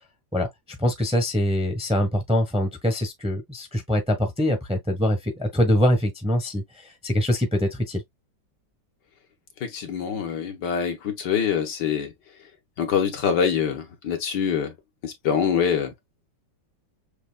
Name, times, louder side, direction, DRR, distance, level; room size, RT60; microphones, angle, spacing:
voice 1, 0.8-6.6 7.0-8.0, equal, 5° right, 1.0 m, -23 dB
voice 2, 9.6-12.1 12.8-14.7 15.0-15.9, left 7 dB, 65° left, 1.7 m, -25 dB
6.8 x 3.0 x 2.3 m
omnidirectional pair, 2.0 m